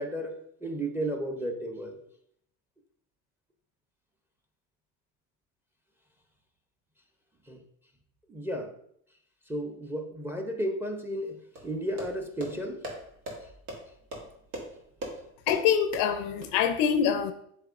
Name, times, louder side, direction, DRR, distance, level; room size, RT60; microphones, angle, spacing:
voice 1, 0.0-2.0 7.5-7.6 8.3-8.7 9.5-12.8, right 1 dB, 5° right, 0.7 m, -33 dB
sound 1, 11.6-16.5, right 1 dB, 80° right, 1.5 m, -41 dB
voice 2, 15.5-17.3, left 8 dB, 55° left, 0.5 m, -25 dB
7.7 x 2.7 x 2.5 m
hypercardioid pair, 85°, 40 cm